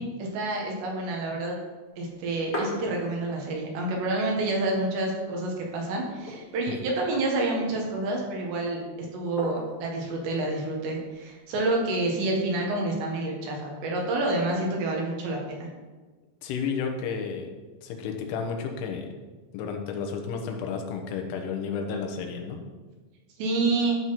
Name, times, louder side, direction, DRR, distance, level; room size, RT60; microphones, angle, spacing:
voice 1, 0.0-1.6 2.0-8.8 9.1-15.7 23.4-24.0, right 2 dB, 70° right, -1 dB, 3.8 m, -28 dB
sound 1, 2.0-3.5 3.9-4.0 4.2-5.0 5.4-5.5 6.0-6.8 7.5-8.2 9.4-9.9 11.0-11.6, left 1 dB, 35° left, 1.3 m, -38 dB
voice 2, 16.4-17.5 17.8-19.1 19.5-22.6, left 6 dB, 90° left, 4 dB, 3.6 m, -32 dB
13.0 x 6.2 x 4.2 m, 1.3 s
omnidirectional pair, 5.3 m